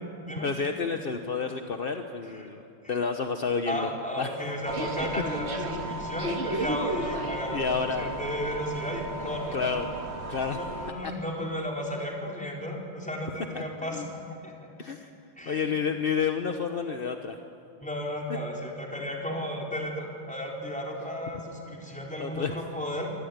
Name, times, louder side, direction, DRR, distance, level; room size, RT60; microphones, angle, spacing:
voice 1, 0.4-2.6 2.9-3.9 4.2-4.3 7.5-8.1 9.5-9.9 10.3-10.6 13.5-14.1 14.8-15.1 15.5-17.4 22.2-22.5, left 5 dB, 45° left, 6 dB, 0.8 m, -30 dB
voice 2, 3.7-9.6 10.5-14.5 15.4-15.7 17.8-23.1, equal, 5° left, -1 dB, 4.0 m, -34 dB
sound 1, 4.6-10.9, right 1 dB, 35° right, 1.7 m, -34 dB
24.5 x 19.0 x 9.5 m, 2.6 s
omnidirectional pair, 2.3 m